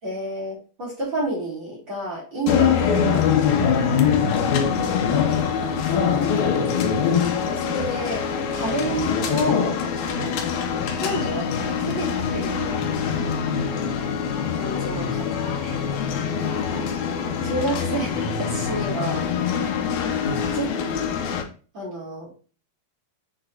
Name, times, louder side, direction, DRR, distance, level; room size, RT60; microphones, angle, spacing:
voice 1, 0.0-3.3 4.6-6.3 7.5-8.3 8.5-9.8 10.2-10.3 11.0-13.0 14.3-15.3 15.5-16.0 16.7-16.9 17.4-19.3 20.5-20.7 21.7-22.3, right 1 dB, 30° right, -5 dB, 3.9 m, -30 dB
sound 1, 2.5-21.4, left 7 dB, 80° left, 2.7 m, -24 dB
voice 2, 3.6-4.2 6.5-6.8 10.1-10.3 13.2-13.9 14.9-15.3 20.2-20.5, left 1 dB, 40° left, -6 dB, 3.0 m, -33 dB
7.1 x 6.0 x 2.6 m, 0.37 s
omnidirectional pair, 4.3 m